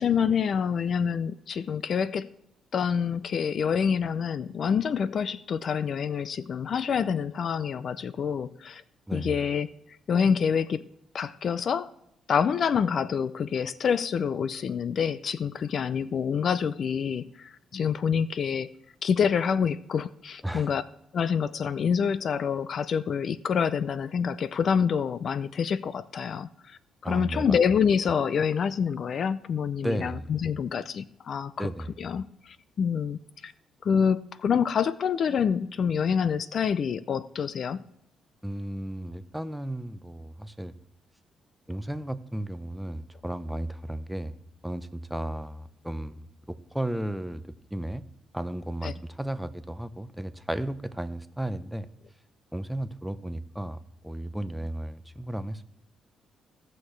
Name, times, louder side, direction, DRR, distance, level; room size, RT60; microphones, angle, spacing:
voice 1, 0.0-2.3 2.7-8.8 9.1-9.7 10.1-10.8 11.1-11.9 12.3-18.7 19.0-20.8 21.1-31.7 32.0-33.5 33.8-37.8 48.8-48.9, left 7 dB, 55° left, 17 dB, 0.4 m, -27 dB
voice 2, 9.1-9.4 20.4-20.7 27.0-27.6 29.8-30.3 31.6-31.9 38.4-40.7 41.7-44.4 44.6-47.4 47.7-48.0 48.3-51.9 52.5-53.8 54.0-55.6, right 1 dB, 5° right, 11 dB, 0.7 m, -34 dB
16.5 x 6.4 x 3.2 m, 0.80 s
cardioid pair, 90°, 0 cm